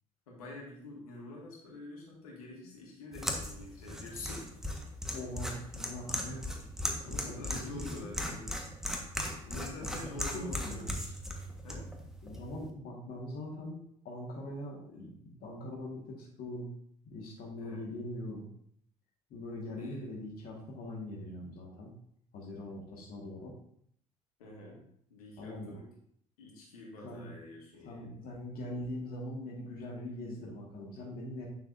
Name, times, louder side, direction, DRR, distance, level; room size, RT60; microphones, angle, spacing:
voice 1, 0.3-4.4 6.2-6.5 7.0-8.8 9.5-11.1 11.6-11.9 17.6-17.9 19.8-20.2 24.4-24.8 25.1-25.8 26.4-28.2, left 2 dB, 80° left, -3 dB, 1.9 m, -47 dB
sound 1, 3.1-12.7, equal, ahead, 1.4 m, -38 dB
voice 2, 5.1-6.4 7.0-7.9 8.2-8.4 9.8-10.9 12.2-13.8 14.0-16.7 17.1-18.5 19.3-21.9 22.3-23.5 25.4-25.8 27.0-27.3 27.9-31.5, left 1 dB, 55° left, -2 dB, 1.8 m, -42 dB
9.4 x 6.6 x 2.7 m, 0.66 s
figure-of-eight pair, 55°, 19 cm